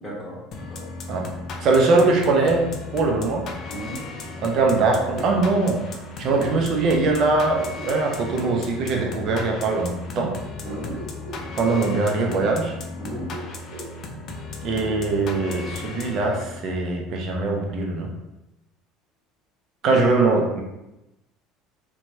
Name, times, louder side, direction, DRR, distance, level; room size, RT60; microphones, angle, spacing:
voice 1, 0.0-0.4 0.7-0.9 3.7-4.0 10.6-10.9 13.0-13.3 19.9-20.0, right 1 dB, 15° left, -8 dB, 1.1 m, -35 dB
sound 1, 0.5-16.8, left 3 dB, 50° left, 0.5 m, -36 dB
voice 2, 1.6-3.5 4.4-10.3 11.3-12.7 14.6-18.1 19.8-20.6, right 3 dB, 55° right, 1 dB, 0.6 m, -22 dB
Bark, 5.1-5.4 6.3-6.5 7.5-8.3 8.9-9.4 10.6-11.8 13.0-13.9 14.8-15.7, right 1 dB, 85° right, 0.7 m, -38 dB
2.9 x 2.2 x 2.7 m, 0.94 s
hypercardioid pair, 80°, 0 cm